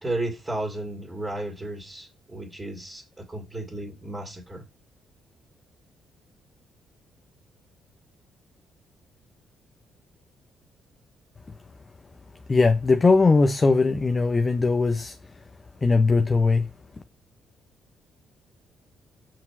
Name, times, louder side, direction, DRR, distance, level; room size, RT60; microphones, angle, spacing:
voice 1, 0.0-4.6, right 2 dB, 20° right, 2.6 m, -33 dB
voice 2, 12.5-15.2 15.8-16.7, left 3 dB, 30° left, 0.7 m, -20 dB
6.1 x 4.8 x 5.9 m
cardioid pair, 90°, 0 cm